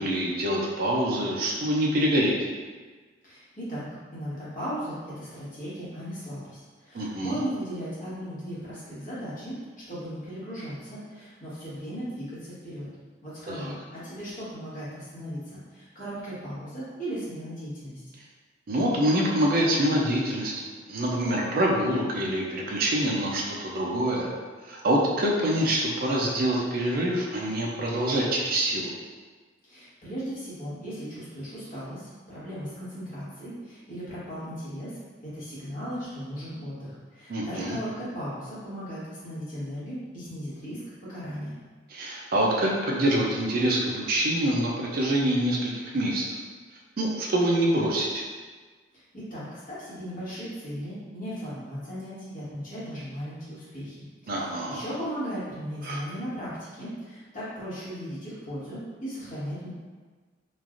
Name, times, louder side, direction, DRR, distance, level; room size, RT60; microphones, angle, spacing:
voice 1, 0.0-2.4 6.9-7.4 13.5-13.7 18.7-20.5 20.9-24.3 24.7-28.9 37.3-37.8 41.9-46.4 47.0-48.2 54.3-54.8 55.8-56.0, right 1 dB, 50° right, -2 dB, 0.4 m, -25 dB
voice 2, 3.2-9.6 9.9-12.9 13.2-18.0 29.6-41.5 49.1-54.0 54.2-59.7, equal, 45° left, -11 dB, 1.2 m, -37 dB
3.1 x 2.4 x 2.4 m, 1.4 s
head